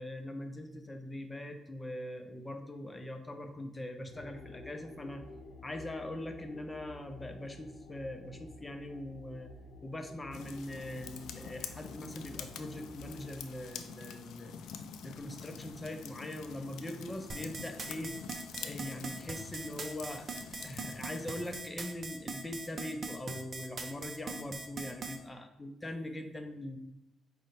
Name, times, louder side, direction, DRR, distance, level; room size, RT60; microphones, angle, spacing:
voice 1, 0.0-5.2 5.6-9.5 9.8-14.5 15.0-18.2 18.6-26.8, left 1 dB, 15° left, 6 dB, 0.5 m, -42 dB
sound 1, 4.1-13.5, left 3 dB, 55° left, 0.7 m, -52 dB
sound 2, 10.3-21.6, left 7 dB, 80° left, 0.3 m, -47 dB
sound 3, 17.3-25.2, right 3 dB, 40° right, 0.5 m, -41 dB
5.0 x 2.1 x 4.0 m, 0.90 s
cardioid pair, 90°, 0 cm